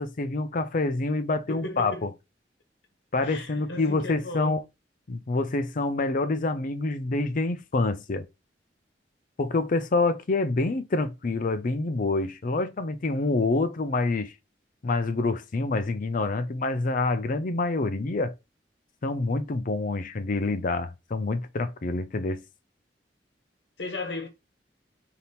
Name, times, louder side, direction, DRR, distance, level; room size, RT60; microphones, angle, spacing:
voice 1, 0.0-2.1 3.1-4.6 5.1-8.3 9.4-14.3 14.8-18.3 19.0-22.4, left 3 dB, 50° left, 0.5 m, -27 dB
voice 2, 1.5-2.0 3.2-4.5 23.8-24.3, left 2 dB, 80° left, 1.1 m, -36 dB
3.4 x 2.9 x 4.1 m
head